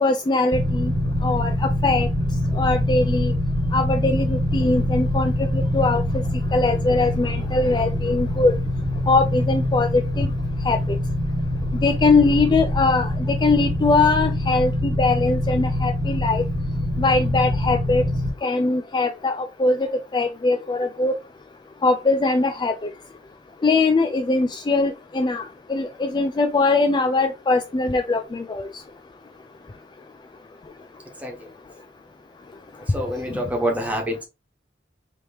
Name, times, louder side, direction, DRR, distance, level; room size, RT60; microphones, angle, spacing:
voice 1, 0.0-0.9 1.2-1.5 1.8-2.1 2.6-3.3 3.7-6.0 6.5-8.5 9.1-10.3 10.7-10.8 11.8-13.1 13.4-14.7 15.0-16.4 17.0-18.0 18.4-21.2 21.8-22.7 23.6-25.4 25.7-28.6, left 3 dB, 25° left, 0.3 m, -21 dB
sound 1, 0.5-18.3, left 1 dB, 70° right, 1.6 m, -24 dB
voice 2, 32.9-34.2, right 1 dB, 10° right, 1.3 m, -26 dB
5.1 x 3.1 x 2.9 m
head